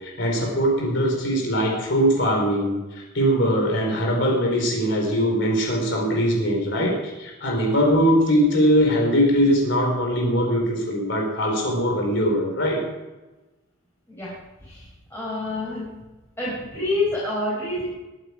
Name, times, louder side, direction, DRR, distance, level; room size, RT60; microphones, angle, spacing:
voice 1, 0.0-12.8, equal, 55° left, 0 dB, 3.8 m, -21 dB
voice 2, 14.6-15.9 16.4-17.9, left 2 dB, 10° left, -7 dB, 4.6 m, -27 dB
21.5 x 9.0 x 4.9 m, 1.1 s
head